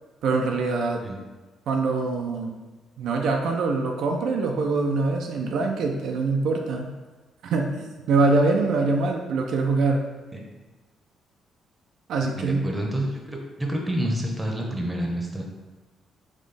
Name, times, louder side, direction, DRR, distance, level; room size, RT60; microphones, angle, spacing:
voice 1, 0.2-1.0 1.7-2.6 3.0-6.9 7.4-10.0 12.1-12.6, right 3 dB, 75° right, 2 dB, 0.4 m, -24 dB
voice 2, 12.4-15.5, equal, 10° right, 0 dB, 0.8 m, -28 dB
4.2 x 3.0 x 3.3 m, 1.2 s
cardioid pair, 90°, 0 cm